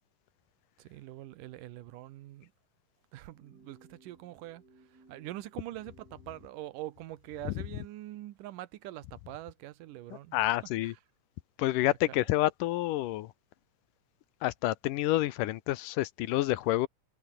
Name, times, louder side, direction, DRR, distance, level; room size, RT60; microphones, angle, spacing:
voice 1, 0.8-2.5 3.1-4.6 4.9-10.5 10.8-11.0 12.1-12.2, right 15 dB, 80° right, 2.6 m, -44 dB
sound 1, 3.3-6.5, right 2 dB, 25° right, 6.0 m, -61 dB
voice 2, 10.3-10.9 11.6-13.3 14.4-16.9, left 16 dB, 85° left, 2.4 m, -28 dB
omnidirectional pair, 3.8 m